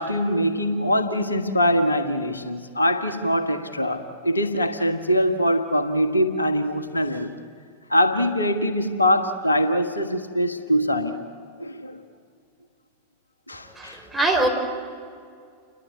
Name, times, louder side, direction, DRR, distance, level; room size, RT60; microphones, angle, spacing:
voice 1, 0.0-7.3 7.9-11.2 11.6-12.0 13.5-14.1, equal, 80° left, 8 dB, 1.5 m, -23 dB
voice 2, 13.7-14.5, right 2 dB, 5° right, 0 dB, 4.4 m, -22 dB
29.5 x 22.5 x 8.2 m, 2.2 s
figure-of-eight pair, 90°, 0 cm